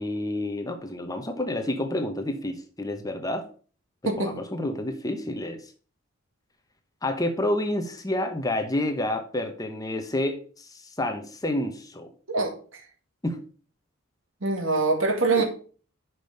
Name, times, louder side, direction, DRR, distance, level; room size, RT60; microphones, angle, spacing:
voice 1, 0.0-3.4 4.0-5.6 7.0-12.1 13.2-13.4 15.4-15.5, left 1 dB, 15° left, 1.0 m, -29 dB
voice 2, 4.1-4.4 12.3-12.8 14.4-15.4, right 3 dB, 65° right, 2.0 m, -24 dB
6.1 x 5.3 x 6.5 m
head